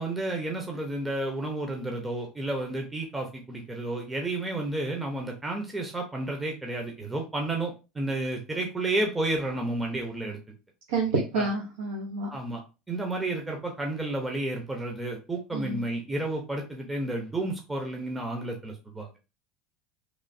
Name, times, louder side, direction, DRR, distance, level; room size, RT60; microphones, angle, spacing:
voice 1, 0.0-10.4 11.3-11.5 12.3-12.6 12.9-19.1, right 2 dB, 15° right, 1 dB, 0.7 m, -31 dB
voice 2, 10.9-12.3 15.5-15.8, right 3 dB, 85° right, -1 dB, 0.7 m, -28 dB
3.1 x 2.2 x 2.6 m, 0.30 s
supercardioid pair, 95°, 0 cm